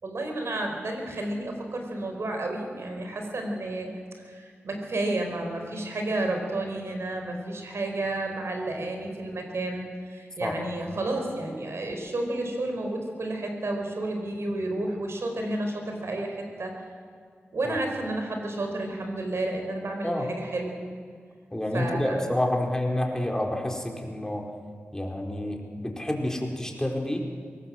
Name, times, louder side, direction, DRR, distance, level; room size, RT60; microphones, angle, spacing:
voice 1, 0.0-3.9 4.2-16.7 17.5-20.8 21.7-22.2, right 2 dB, 70° right, 3 dB, 5.0 m, -31 dB
voice 2, 21.5-24.4 24.9-27.3, left 1 dB, 10° left, 1 dB, 4.4 m, -29 dB
22.5 x 18.5 x 7.8 m, 2.1 s
cardioid pair, 55°, 5 cm